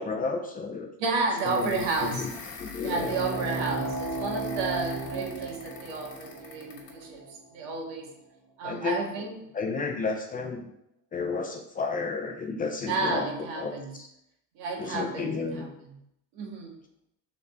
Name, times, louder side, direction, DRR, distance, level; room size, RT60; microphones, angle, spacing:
voice 1, 0.0-0.9 1.4-2.3 2.6-3.2 8.6-9.3 9.5-10.7 11.1-13.3 13.6-13.7 14.0-14.1 14.8-15.7, left 4 dB, 20° left, 3 dB, 0.6 m, -32 dB
voice 2, 1.0-2.2 2.8-8.1 8.6-9.4 12.9-13.9 14.6-15.7 16.3-16.8, right 3 dB, 75° right, 0 dB, 1.8 m, -31 dB
sound 1, 1.4-7.0, left 5 dB, 45° left, 1.9 m, -45 dB
sound 2, 2.9-8.0, right 2 dB, 25° right, 1.9 m, -35 dB
5.5 x 4.1 x 5.1 m, 0.78 s
cardioid pair, 145°, 41 cm